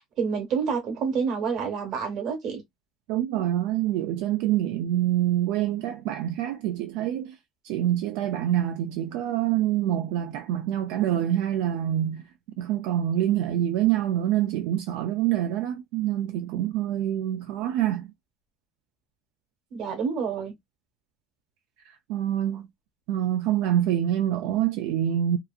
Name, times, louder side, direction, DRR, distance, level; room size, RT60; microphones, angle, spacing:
voice 1, 0.0-2.6 19.7-20.5, right 6 dB, 45° right, 1.1 m, -28 dB
voice 2, 3.1-7.4 7.6-12.2 12.6-18.1 21.9-22.7 23.1-25.4, right 12 dB, 75° right, 0.4 m, -26 dB
2.8 x 2.4 x 2.3 m
cardioid pair, 175°, 0 cm